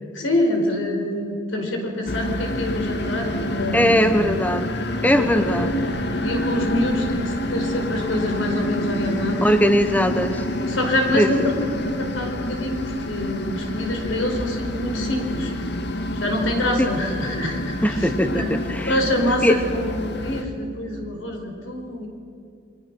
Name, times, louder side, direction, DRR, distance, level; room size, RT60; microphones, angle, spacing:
voice 1, 0.1-4.0 5.2-5.6 6.2-9.5 10.7-15.5 16.1-18.5 18.8-22.1, left 1 dB, 90° left, 3 dB, 4.7 m, -26 dB
sound 1, 2.1-20.4, left 1 dB, 60° left, 1.7 m, -28 dB
voice 2, 3.7-4.7 5.0-5.9 9.4-10.4 11.1-11.5 16.8-16.9 17.8-19.0 19.4-19.6, equal, 10° left, 8 dB, 1.0 m, -20 dB
28.5 x 22.5 x 6.2 m, 2.6 s
head